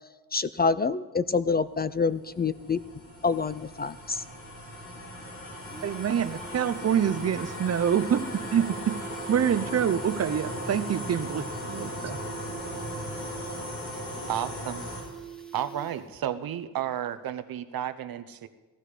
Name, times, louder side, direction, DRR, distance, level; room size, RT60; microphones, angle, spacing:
voice 1, 0.3-2.8 3.2-4.2, left 4 dB, 25° left, 15 dB, 0.4 m, -27 dB
sound 1, 1.5-15.0, left 1 dB, 75° left, 5.0 m, -38 dB
sound 2, 4.7-4.8 5.1-5.2 5.4-16.3 16.5-16.6, right 8 dB, ahead, 1.6 m, -45 dB
voice 2, 5.8-9.0 9.3-12.2, right 8 dB, 45° right, 14 dB, 0.7 m, -26 dB
voice 3, 14.3-14.8 15.5-18.5, right 10 dB, 70° right, 12 dB, 0.9 m, -32 dB
17.5 x 13.0 x 5.0 m, 1.2 s
cardioid pair, 100°, 37 cm